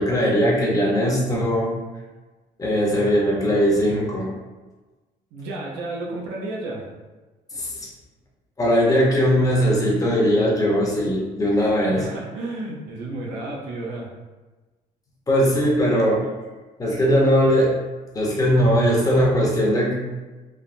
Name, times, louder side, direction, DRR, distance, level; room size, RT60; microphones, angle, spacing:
voice 1, 0.0-1.7 2.6-4.3 7.5-7.9 8.6-12.1 15.3-16.3 16.8-17.7 18.1-19.9, equal, 20° left, -3 dB, 0.8 m, -19 dB
voice 2, 5.3-6.9 11.9-14.1, right 2 dB, 90° right, -2 dB, 0.6 m, -32 dB
3.3 x 2.1 x 2.5 m, 1.2 s
cardioid pair, 110°, 17 cm